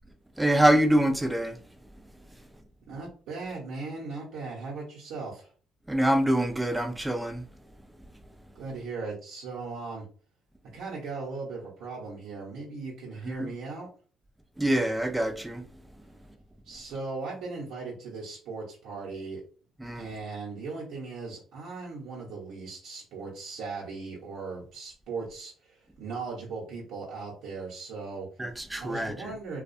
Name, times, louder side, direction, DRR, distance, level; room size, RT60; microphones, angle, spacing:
voice 1, 0.4-1.6 5.9-7.4 13.4-13.5 14.6-15.7 19.8-20.1 28.4-29.3, right 1 dB, 10° right, 0.5 m, -25 dB
voice 2, 2.9-5.5 8.5-10.0 10.7-13.9 16.6-19.4 19.9-28.3 28.8-29.6, right 4 dB, 80° right, 0.8 m, -38 dB
2.3 x 2.3 x 2.6 m
supercardioid pair, 75°, 0 cm